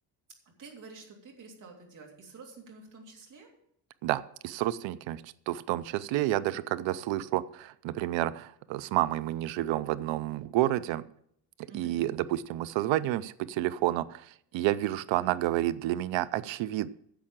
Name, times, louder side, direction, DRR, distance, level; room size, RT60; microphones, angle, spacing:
voice 1, 0.6-3.5 11.7-12.0, right 3 dB, 45° right, 0 dB, 3.1 m, -49 dB
voice 2, 4.0-11.0 11.7-16.9, right 14 dB, 90° right, 16 dB, 0.6 m, -30 dB
10.5 x 7.5 x 7.4 m, 0.69 s
cardioid pair, 160°, 44 cm